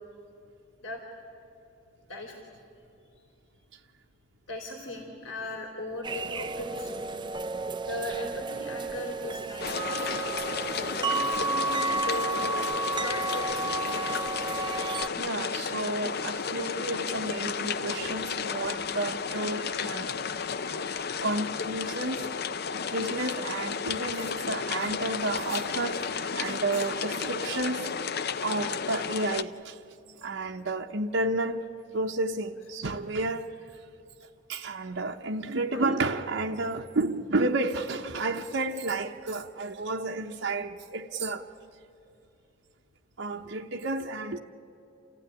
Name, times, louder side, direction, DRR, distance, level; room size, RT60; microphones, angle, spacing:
voice 1, 4.5-7.1 7.8-10.2 10.9-12.7 13.0-13.8 35.7-35.9, left 1 dB, 90° left, 3.5 m, -38 dB
sound 1, 6.0-15.1, right 3 dB, 25° right, 0.5 m, -32 dB
sound 2, 9.6-29.4, left 6 dB, 55° left, 0.7 m, -33 dB
voice 2, 14.6-20.1 21.2-22.3 22.7-27.9 28.4-29.8 30.2-31.7 31.9-33.6 34.5-41.5 43.2-44.4, right 2 dB, 70° right, 0.9 m, -31 dB
28.5 x 15.5 x 10.0 m
head